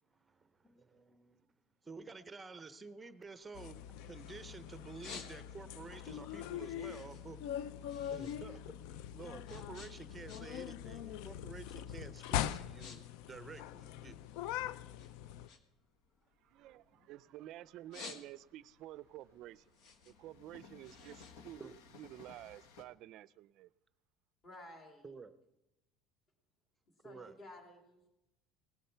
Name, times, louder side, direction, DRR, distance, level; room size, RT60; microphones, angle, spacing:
voice 1, 0.1-1.5 1.8-3.8 4.0-7.4 8.1-8.6 9.1-14.2 21.6-21.7 25.0-25.4 27.0-27.4, right 4 dB, 10° right, 11 dB, 0.7 m, -51 dB
sound 1, 3.3-4.4 4.7-5.8 6.2-8.4 8.7-10.7 11.0-11.4 12.0-12.1 12.5-13.0 13.2-14.5 15.0-17.3 17.7-18.7 19.1-22.3, left 5 dB, 45° left, 1.4 m, -53 dB
sound 2, 3.5-15.5, left 11 dB, 65° left, 0.4 m, -42 dB
Train, 15.7-22.8, left 5 dB, 90° left, 1.3 m, -61 dB
voice 2, 16.5-19.7 20.0-23.7, right 14 dB, 45° right, 18 dB, 0.4 m, -51 dB
voice 3, 24.4-25.1 27.0-28.1, left 1 dB, 25° left, 2 dB, 2.4 m, -53 dB
18.0 x 12.0 x 4.5 m, 0.94 s
cardioid pair, 170°, 0 cm